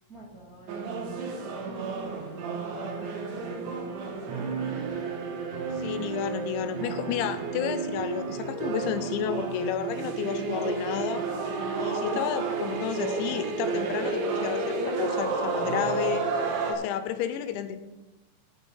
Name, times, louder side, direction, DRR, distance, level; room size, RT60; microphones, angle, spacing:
voice 1, 0.0-4.3, right 3 dB, 35° right, -4 dB, 1.5 m, -50 dB
sound 1, 0.7-16.7, right 4 dB, 85° right, 4.2 m, -31 dB
voice 2, 5.8-11.3 11.8-16.3 16.7-17.8, left 9 dB, 80° left, 11 dB, 3.1 m, -31 dB
12.5 x 9.2 x 5.6 m, 1.1 s
omnidirectional pair, 5.3 m